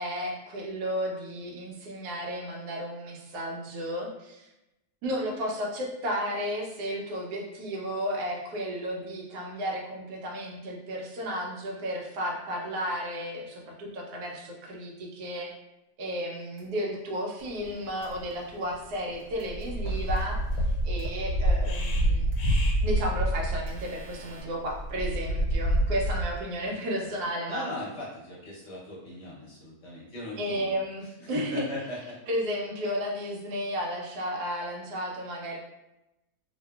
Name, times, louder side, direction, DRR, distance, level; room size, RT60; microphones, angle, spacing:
voice 1, 0.0-4.5 5.0-15.5 16.0-20.4 20.8-22.3 22.8-27.7 30.4-31.7 32.3-35.6, equal, 85° right, -1 dB, 1.1 m, -33 dB
sound 1, 16.6-16.7 18.0-18.1 19.4-19.5 21.0-21.1 22.3-22.4 23.6-24.4, right 3 dB, 40° right, 0.9 m, -51 dB
sound 2, 17.7-17.8 18.0-18.2 18.7-19.0 19.3-26.4, right 1 dB, 80° left, 1.1 m, -27 dB
voice 2, 27.5-30.7 31.2-32.2, left 1 dB, 55° left, -6 dB, 0.9 m, -39 dB
2.7 x 2.3 x 2.2 m, 0.93 s
omnidirectional pair, 1.6 m